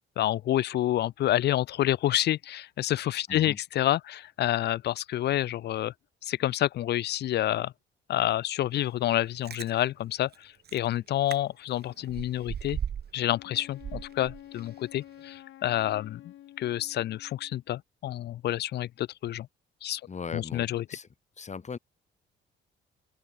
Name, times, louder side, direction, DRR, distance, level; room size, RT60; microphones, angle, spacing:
voice 1, 0.2-5.9 6.2-7.7 8.1-12.8 13.1-16.2 16.6-19.5 19.8-20.0 20.3-20.8, left 13 dB, 60° left, 0.4 m, -28 dB
Chewing mastication, 9.2-9.7 10.3-10.4 10.7-10.9 11.3-11.4 11.7-13.2 13.6-14.8 15.2-15.3, right 8 dB, 55° right, 2.3 m, -37 dB
Wind instrument woodwind instrument, 13.3-17.6, left 13 dB, 80° left, 3.8 m, -49 dB
voice 2, 20.1-21.1 21.4-21.8, left 5 dB, 35° left, 2.4 m, -38 dB
open air
cardioid pair, 90°, 20 cm